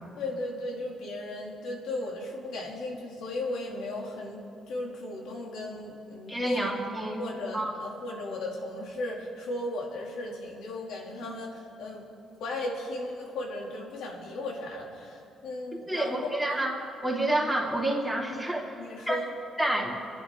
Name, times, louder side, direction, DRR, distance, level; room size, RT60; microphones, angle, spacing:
voice 1, 0.2-4.4 4.7-6.7 7.2-12.1 12.4-16.1 16.5-16.6 18.3-18.4 18.8-19.3, left 2 dB, 85° left, -1 dB, 2.8 m, -36 dB
voice 2, 6.3-7.2 7.5-7.7 15.9-16.7 17.0-18.7 19.1-19.2 19.6-19.9, right 1 dB, 5° right, -3 dB, 2.9 m, -28 dB
26.5 x 10.5 x 3.8 m, 2.7 s
cardioid pair, 90°, 0 cm